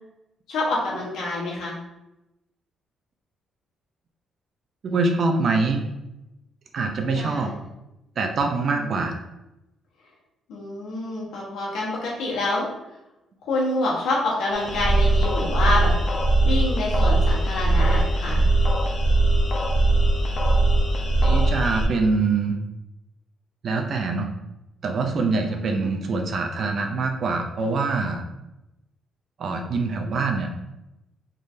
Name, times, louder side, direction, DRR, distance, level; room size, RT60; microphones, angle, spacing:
voice 1, 0.5-1.8 7.1-7.6 8.6-8.9 10.5-12.7 13.5-15.9 16.5-18.4 25.5-25.9, left 2 dB, 80° left, -4 dB, 1.4 m, -27 dB
voice 2, 4.8-5.8 6.7-7.5 8.2-9.2 21.2-22.6 23.6-24.3 24.8-28.2 29.4-30.5, right 3 dB, 55° right, 4 dB, 0.5 m, -24 dB
sound 1, 14.5-21.9, right 1 dB, 50° left, 0.8 m, -20 dB
3.7 x 3.2 x 2.7 m, 0.92 s
cardioid pair, 90°, 0 cm